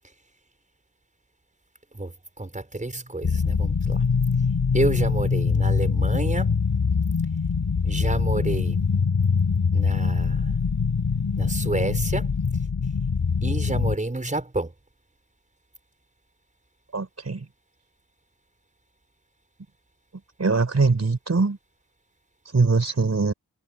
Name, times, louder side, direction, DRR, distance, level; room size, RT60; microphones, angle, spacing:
voice 1, 1.9-4.0 4.7-6.5 7.8-8.8 9.7-10.5 11.4-12.4 13.4-14.7, right 2 dB, 20° right, 5.7 m, -29 dB
sound 1, 3.2-13.9, left 5 dB, 80° left, 8.0 m, -23 dB
voice 2, 16.9-17.4 20.4-21.6 22.5-23.3, right 4 dB, 50° right, 4.2 m, -22 dB
wide cardioid pair, 105°, 33 cm